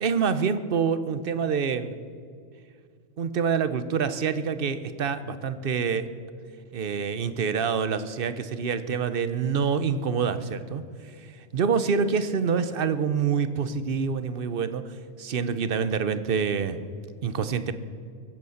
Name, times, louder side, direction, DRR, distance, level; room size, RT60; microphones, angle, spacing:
voice 1, 0.0-1.9 3.2-6.1 6.7-16.8 17.2-17.7, right 6 dB, 55° right, 12 dB, 0.9 m, -26 dB
22.5 x 8.2 x 6.5 m, 2.2 s
omnidirectional pair, 1.2 m